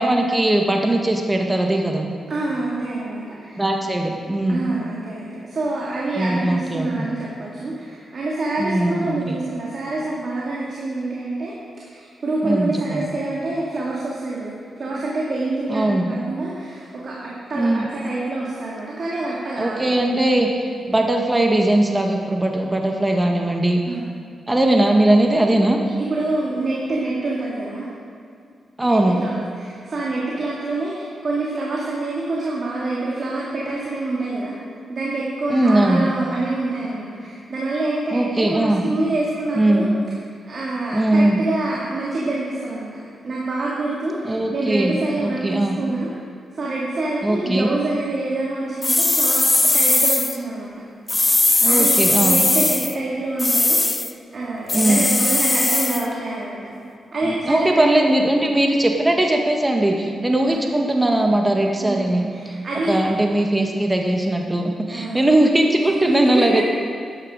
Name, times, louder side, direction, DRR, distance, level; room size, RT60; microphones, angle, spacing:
voice 1, 0.0-2.1 3.6-4.6 6.2-7.1 8.6-9.3 12.4-13.0 15.7-16.1 17.5-17.9 19.6-23.8 24.5-25.8 28.8-29.2 35.5-36.0 38.1-38.9 39.6-39.8 40.9-41.4 44.3-45.8 47.2-47.7 51.6-52.4 54.7-55.0 57.3-62.5 62.9-66.6, right 1 dB, 20° right, 2 dB, 1.6 m, -19 dB
voice 2, 2.3-3.6 4.5-11.5 11.8-20.0 23.8-24.0 25.8-27.9 28.8-34.6 34.9-39.9 40.5-46.1 46.5-50.7 51.7-56.6 57.1-58.1 60.4-60.6 61.8-63.0 64.9-65.3, right 2 dB, 60° right, -5 dB, 2.7 m, -26 dB
sound 1, 48.8-50.4 51.1-52.9 53.4-54.1 54.7-56.1, left 2 dB, 25° left, 0.6 m, -19 dB
11.5 x 10.5 x 5.1 m, 2.3 s
supercardioid pair, 50°, 0 cm